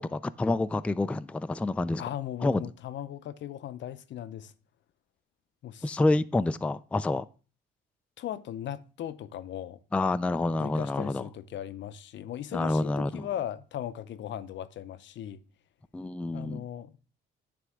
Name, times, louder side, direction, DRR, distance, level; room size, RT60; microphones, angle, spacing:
voice 1, 0.0-2.0 2.4-2.7 5.8-7.3 9.9-11.2 12.5-13.3 15.9-16.6, left 2 dB, 5° left, 0.3 m, -28 dB
voice 2, 2.0-4.5 5.6-6.0 8.2-9.8 10.6-15.4 16.3-17.0, left 11 dB, 65° left, 0.6 m, -38 dB
9.7 x 3.4 x 6.2 m
cardioid pair, 90°, 20 cm